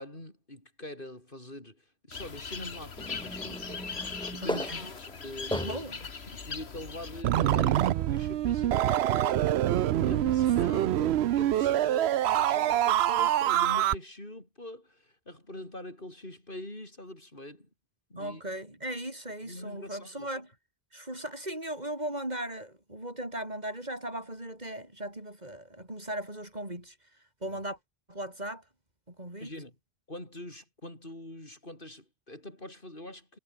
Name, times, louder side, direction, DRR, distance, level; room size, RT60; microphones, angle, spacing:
voice 1, 0.0-3.9 4.3-4.7 5.1-9.5 10.0-17.7 18.1-18.4 19.4-20.3 27.4-27.6 29.4-29.8 30.1-33.4, left 1 dB, 55° left, 6.3 m, -44 dB
sound 1, 2.1-7.2, left 5 dB, 85° left, 2.0 m, -40 dB
sound 2, 3.0-6.0 6.7-6.8 8.2-8.3, equal, 5° left, 3.1 m, -37 dB
voice 2, 4.4-4.9 5.5-6.0 18.2-20.5 20.9-27.0 27.4-27.8 28.1-28.6 29.1-29.5, right 1 dB, 40° right, 5.7 m, -37 dB
sound 3, 7.2-13.9, right 12 dB, 90° right, 0.9 m, -25 dB
omnidirectional pair, 1.1 m